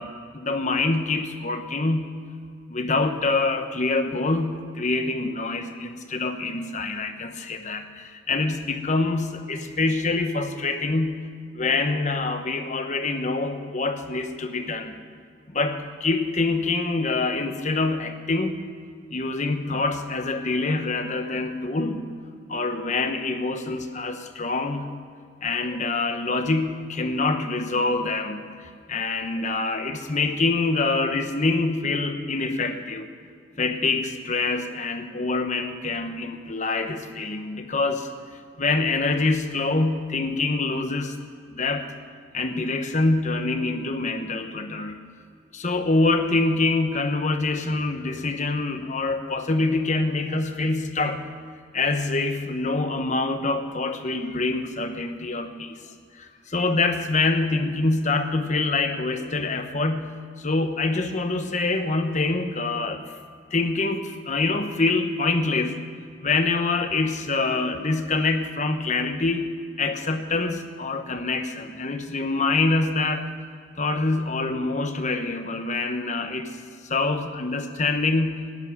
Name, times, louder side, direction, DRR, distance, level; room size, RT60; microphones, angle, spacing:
voice 1, 0.0-2.1 2.7-11.3 11.5-15.0 15.5-18.6 19.1-22.1 22.5-25.0 25.4-28.5 28.9-33.1 33.6-38.1 38.6-41.2 41.5-41.9 42.3-45.0 45.5-51.3 51.7-55.8 56.2-60.1 60.4-63.1 63.5-65.9 66.2-73.2 73.8-76.6 76.9-78.3, left 3 dB, 40° left, 7 dB, 1.0 m, -25 dB
13.5 x 8.4 x 9.6 m, 2.2 s
head